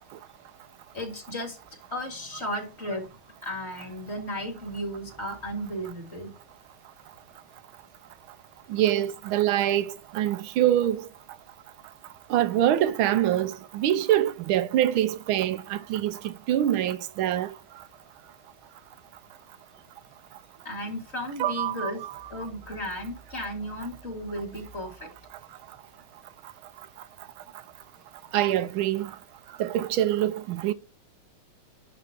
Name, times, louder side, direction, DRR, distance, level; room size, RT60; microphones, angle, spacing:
voice 1, 0.9-1.6 1.9-6.3 20.6-22.0 22.3-25.1, equal, 30° left, 2.3 m, -34 dB
voice 2, 8.7-11.0 12.3-17.5 21.4-22.1 28.3-29.1 29.6-30.7, right 12 dB, 80° right, 1.5 m, -25 dB
11.0 x 4.0 x 5.9 m
omnidirectional pair, 2.3 m